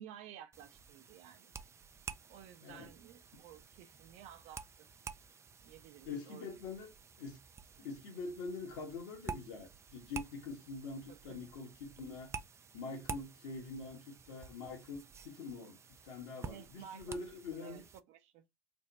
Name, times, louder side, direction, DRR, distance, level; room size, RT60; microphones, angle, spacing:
voice 1, 0.0-1.5 2.3-4.9 5.6-6.5 11.1-11.5 16.4-17.2 17.5-18.4, right 10 dB, 65° right, 0.7 m, -53 dB
sound 1, 0.5-18.0, right 5 dB, 20° right, 0.4 m, -50 dB
voice 2, 2.6-2.9 3.3-3.4 6.0-6.9 7.2-7.4 7.8-12.3 12.7-17.8, left 4 dB, 75° left, 1.4 m, -45 dB
3.4 x 2.2 x 4.0 m
hypercardioid pair, 90°, 12 cm